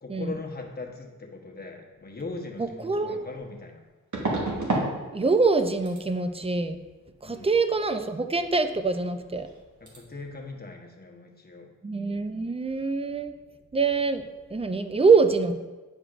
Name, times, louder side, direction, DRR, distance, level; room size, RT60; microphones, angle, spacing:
voice 1, 0.0-3.8 7.2-7.5 9.8-11.7, left 3 dB, 30° left, 1 dB, 1.0 m, -40 dB
voice 2, 2.6-3.3 5.1-6.8 7.2-9.5 11.8-13.3 13.7-14.3 14.5-15.5, right 4 dB, 20° right, 9 dB, 0.4 m, -24 dB
sound 1, 2.6-2.7 4.1-4.9 5.2-5.6 5.9-6.0 9.0-9.1 9.3-9.6 9.9-10.0, right 2 dB, 60° right, 1.5 m, -29 dB
8.9 x 4.9 x 2.5 m, 1.2 s
wide cardioid pair, 75°, 34 cm